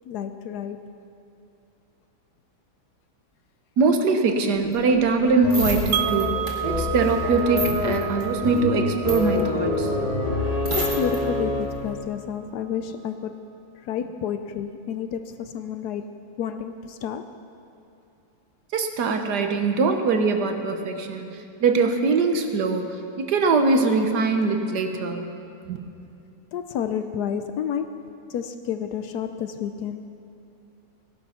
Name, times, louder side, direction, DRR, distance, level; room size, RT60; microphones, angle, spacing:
voice 1, 0.0-0.9 10.7-13.3 13.7-17.3 26.5-28.0 28.3-30.1, left 8 dB, 75° left, 9 dB, 0.9 m, -30 dB
voice 2, 3.8-9.9 18.7-21.3 21.6-22.9 23.2-25.2 25.7-25.8, right 4 dB, 60° right, 6 dB, 1.4 m, -22 dB
sound 1, 4.6-11.2 11.6-11.9, right 1 dB, 25° right, 1.9 m, -32 dB
sound 2, 5.4-11.9, left 2 dB, 25° left, 1.0 m, -27 dB
Wind chime, 5.9-11.9, right 13 dB, 75° right, 1.3 m, -33 dB
17.0 x 11.0 x 5.7 m, 2.6 s
omnidirectional pair, 2.2 m